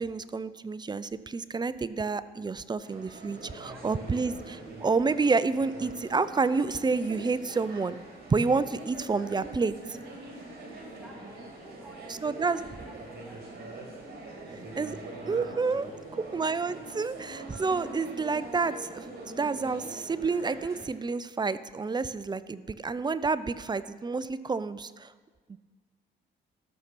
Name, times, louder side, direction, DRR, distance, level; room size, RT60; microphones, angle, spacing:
voice 1, 0.0-8.0 8.3-10.0 12.2-12.6 14.8-15.0 15.3-15.9 16.2-25.1 25.5-25.6, right 4 dB, 20° right, 14 dB, 0.4 m, -29 dB
sound 1, 2.8-20.9, right 2 dB, 50° right, 2.9 m, -43 dB
voice 2, 3.3-3.9 4.3-4.9 9.1-9.7 10.7-14.1 14.4-16.2, right 1 dB, ahead, -2 dB, 2.0 m, -56 dB
13.5 x 6.6 x 5.9 m, 1.5 s
cardioid pair, 90°, 20 cm